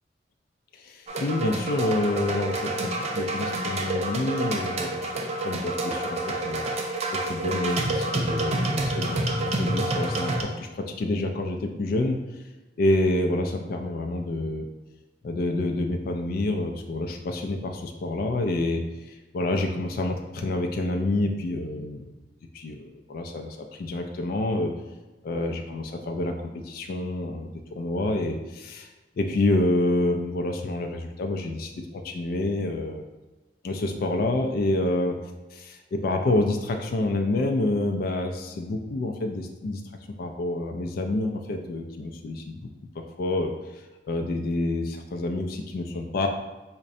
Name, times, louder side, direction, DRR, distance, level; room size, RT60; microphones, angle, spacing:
voice 1, 0.7-5.1 5.4-6.6 7.1-12.2 12.8-14.7 15.2-22.1 22.5-24.7 25.2-28.9 29.2-33.0 33.6-35.2 35.5-39.8 40.2-42.6 43.0-43.5 44.1-46.3, left 2 dB, 55° left, 3 dB, 0.3 m, -28 dB
sound 1, 1.1-10.4, right 2 dB, 40° right, 0.4 m, -28 dB
4.9 x 2.1 x 2.6 m, 1.2 s
head